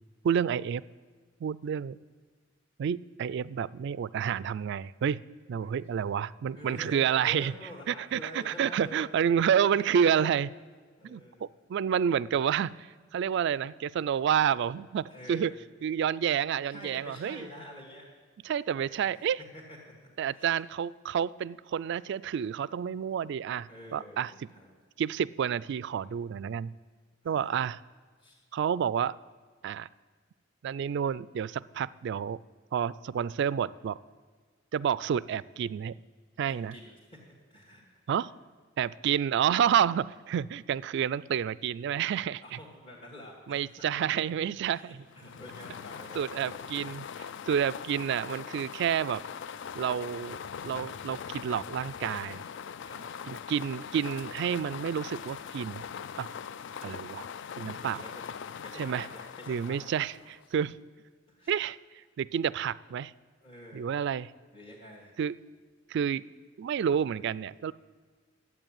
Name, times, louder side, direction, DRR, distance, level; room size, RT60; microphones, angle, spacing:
voice 1, 0.2-0.8 1.4-2.0 2.8-5.2 5.5-7.5 7.9-10.5 11.0-15.5 15.8-17.5 18.4-19.4 20.2-24.3 25.0-26.7 27.2-27.8 28.5-29.1 29.6-29.9 30.6-32.4 32.7-34.0 34.7-36.0 36.4-36.7 38.1-38.3 38.8-42.4 43.5-45.0 46.2-47.1 47.5-49.2 49.7-50.4 50.6-52.4 53.3-55.8 56.2-56.3 56.8-57.2 57.6-58.0 58.8-59.1 59.5-60.8 61.5-61.8 62.2-63.1 63.7-64.3 65.2-65.3 65.9-66.2 66.6-67.7, right 8 dB, 60° right, 20 dB, 0.3 m, -29 dB
voice 2, 6.6-9.1 9.6-10.3 11.0-11.5 15.1-15.6 16.6-18.1 18.8-19.1 19.5-19.8 20.3-20.5 23.7-24.7 27.2-27.5 28.2-28.4 36.4-37.2 37.5-38.3 42.4-44.1 44.4-46.6 52.8-53.0 57.7-58.3 58.6-60.0 61.3-61.6 63.4-64.0 64.5-65.1, left 1 dB, 30° left, -4 dB, 1.9 m, -48 dB
sound 1, 45.1-60.5, left 7 dB, 60° left, 0.4 m, -41 dB
11.5 x 8.3 x 8.8 m, 1.5 s
head